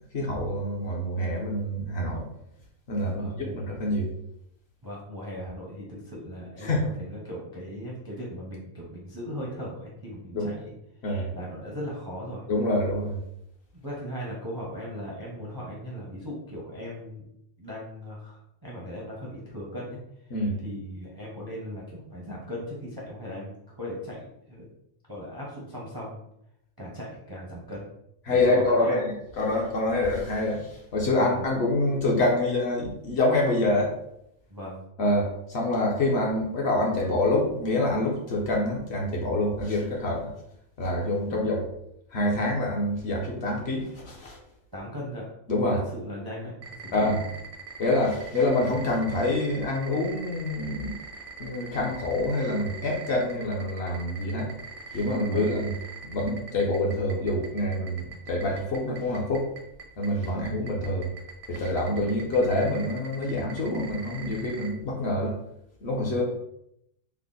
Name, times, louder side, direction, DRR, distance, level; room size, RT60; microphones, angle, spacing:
voice 1, 0.1-2.2 2.9-4.1 6.6-6.9 10.3-10.5 11.0-11.3 12.5-13.2 20.3-20.6 28.3-33.9 35.0-40.2 40.8-41.6 42.1-44.4 45.5-45.8 46.9-47.2 47.8-51.0 51.4-54.6 54.9-55.7 56.0-59.5 60.0-61.1 61.5-65.4 65.8-66.2, left 1 dB, 60° left, -1 dB, 0.8 m, -26 dB
voice 2, 3.0-3.6 4.8-10.7 11.3-12.4 13.7-17.2 17.6-20.0 20.6-24.7 25.1-26.2 26.8-27.9 28.3-29.0 31.2-31.5 34.5-34.8 41.3-41.4 44.7-45.3 45.9-47.2 55.3-55.5 60.3-60.5 61.9-62.1 66.1-66.2, equal, 30° right, -4 dB, 0.4 m, -38 dB
sound 1, 46.6-64.7, right 6 dB, 85° right, 1.1 m, -41 dB
3.4 x 2.1 x 3.7 m, 0.78 s
omnidirectional pair, 1.4 m